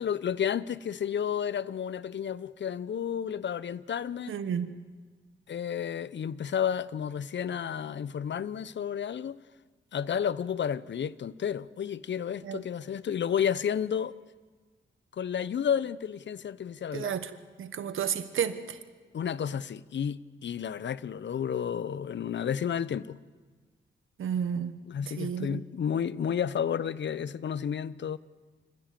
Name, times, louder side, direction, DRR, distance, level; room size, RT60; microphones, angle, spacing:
voice 1, 0.0-4.3 5.5-9.4 9.9-14.1 15.1-17.2 19.1-23.2 24.9-28.2, left 8 dB, 65° left, 0.7 m, -31 dB
voice 2, 4.3-4.7 12.4-12.6 16.9-17.3 17.6-18.8 24.2-24.8 25.2-25.6, right 8 dB, 80° right, 1.3 m, -31 dB
25.0 x 15.5 x 7.6 m
cardioid pair, 50°, 20 cm